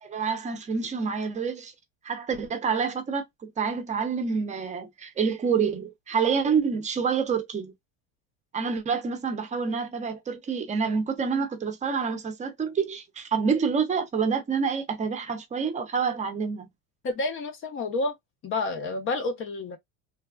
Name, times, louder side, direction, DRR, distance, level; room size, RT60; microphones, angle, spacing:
voice 1, 0.0-1.7 2.0-7.7 8.5-16.7, right 6 dB, 20° right, 0.7 m, -27 dB
voice 2, 17.0-18.1 18.4-19.8, left 3 dB, 35° left, 0.7 m, -29 dB
3.3 x 2.2 x 2.2 m
cardioid pair, 145°, 37 cm